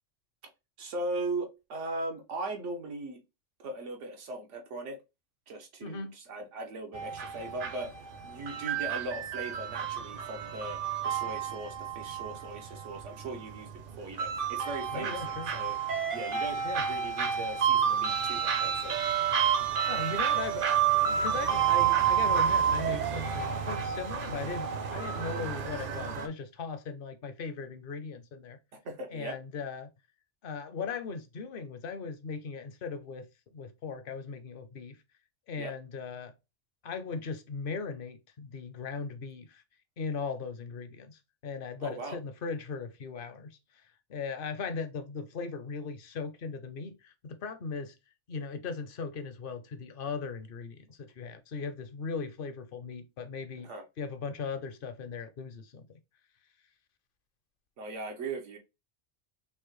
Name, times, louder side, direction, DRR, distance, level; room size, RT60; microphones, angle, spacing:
voice 1, 0.8-3.2 3.6-5.0 5.5-7.9 8.2-13.7 14.0-15.8 16.1-16.6 16.9-19.0 28.7-29.4 35.5-35.7 41.8-42.2 53.6-53.8 57.8-58.6, right 2 dB, 90° right, 1.2 m, -39 dB
voice 2, 5.8-6.1 14.9-15.5 16.6-16.8 19.9-20.7 21.1-28.6 29.1-29.9 30.4-33.3 33.5-35.0 35.5-36.3 36.8-39.6 40.0-43.6 44.1-47.9 48.3-53.7 54.0-55.9, left 5 dB, 55° left, 0.7 m, -38 dB
sound 1, 6.9-26.3, right 8 dB, 55° right, 0.7 m, -30 dB
5.4 x 2.1 x 3.0 m
omnidirectional pair, 1.2 m